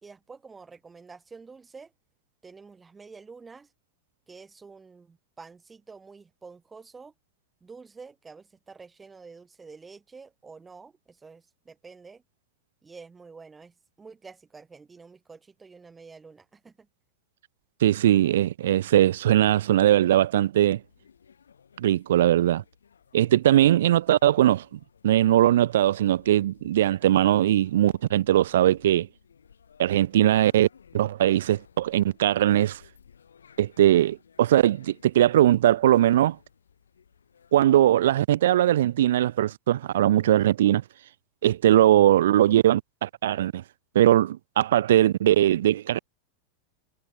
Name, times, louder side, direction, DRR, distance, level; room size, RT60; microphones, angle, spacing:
voice 1, 0.0-1.9 2.4-3.7 4.3-7.1 7.6-12.2 12.8-16.9, right 4 dB, 15° right, 3.6 m, -48 dB
voice 2, 17.8-20.8 21.8-22.6 23.1-29.1 29.8-30.7 30.9-32.8 33.6-36.4 37.5-40.8 41.4-43.6 44.0-46.0, right 12 dB, 60° right, 0.3 m, -20 dB
sound 1, 20.7-38.0, left 7 dB, 70° left, 6.9 m, -58 dB
figure-of-eight pair, 90°, 0 cm